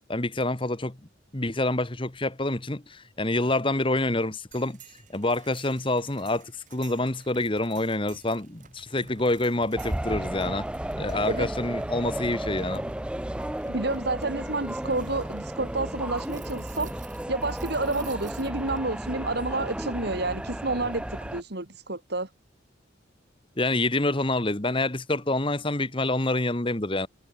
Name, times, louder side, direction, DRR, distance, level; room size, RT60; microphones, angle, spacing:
voice 1, 0.1-1.0 1.3-4.8 5.1-10.7 11.0-12.8 23.6-27.1, left 2 dB, 25° left, 1.6 m, -27 dB
sound 1, 4.5-18.8, right 5 dB, 40° right, 3.9 m, -52 dB
sound 2, 9.8-21.4, right 1 dB, 5° right, 0.4 m, -33 dB
voice 2, 13.7-22.3, right 2 dB, 55° right, 2.1 m, -30 dB
head